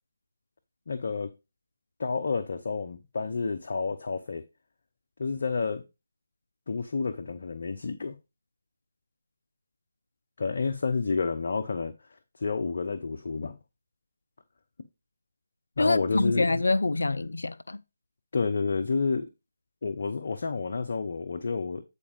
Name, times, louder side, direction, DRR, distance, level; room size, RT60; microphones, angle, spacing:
voice 1, 0.9-1.3 2.0-4.4 5.2-5.8 6.7-8.1 10.4-11.9 12.4-13.6 15.8-16.7 18.3-19.3 19.8-21.8, left 4 dB, 50° left, 0.8 m, -29 dB
voice 2, 15.8-17.8, left 2 dB, 65° left, 0.4 m, -26 dB
8.6 x 4.5 x 5.0 m
figure-of-eight pair, 150°, 0 cm